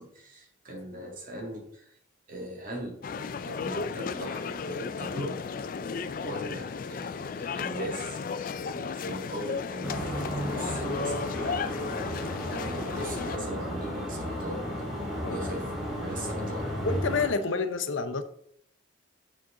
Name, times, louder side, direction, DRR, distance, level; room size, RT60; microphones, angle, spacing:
voice 1, 0.0-1.9 2.3-5.4 6.2-8.2 8.5-12.1 12.5-14.7 15.0-16.7, right 1 dB, 40° right, 1.9 m, -40 dB
sound 1, 3.0-13.4, left 5 dB, 45° left, 0.3 m, -34 dB
sound 2, 9.8-17.3, equal, ahead, 2.7 m, -34 dB
voice 2, 16.8-18.2, left 4 dB, 70° left, 0.7 m, -29 dB
7.7 x 6.4 x 3.7 m
head